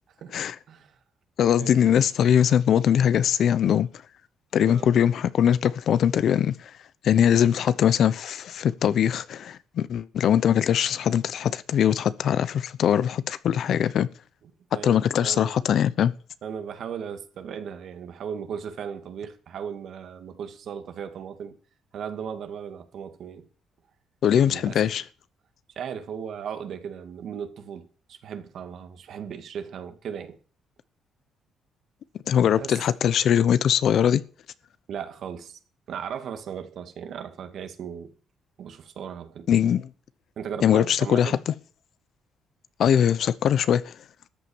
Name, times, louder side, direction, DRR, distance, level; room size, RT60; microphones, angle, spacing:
voice 1, 0.2-1.0 1.6-1.8 4.6-4.9 14.7-15.6 16.4-21.6 21.9-23.5 24.4-24.9 25.8-30.4 32.6-32.7 33.1-33.2 34.9-35.6 35.9-38.1 38.6-39.5 40.4-41.4, right 7 dB, 65° right, 2.0 m, -37 dB
voice 2, 1.4-3.9 4.5-6.7 7.0-14.1 14.8-16.1 24.2-25.0 32.3-34.2 39.5-39.9 40.6-41.4 42.8-43.9, left 9 dB, 70° left, 0.8 m, -21 dB
13.5 x 8.4 x 7.2 m
cardioid pair, 90°, 0 cm